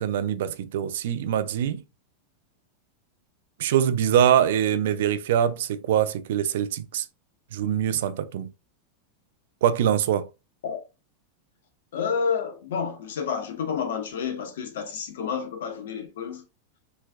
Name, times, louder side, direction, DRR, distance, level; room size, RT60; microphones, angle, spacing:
voice 1, 0.0-1.8 3.6-7.0 7.5-8.5 9.6-10.3, right 10 dB, 75° right, 0.4 m, -23 dB
voice 2, 11.9-16.4, left 6 dB, 85° left, 1.0 m, -30 dB
3.4 x 3.1 x 2.3 m
supercardioid pair, 150°, 0 cm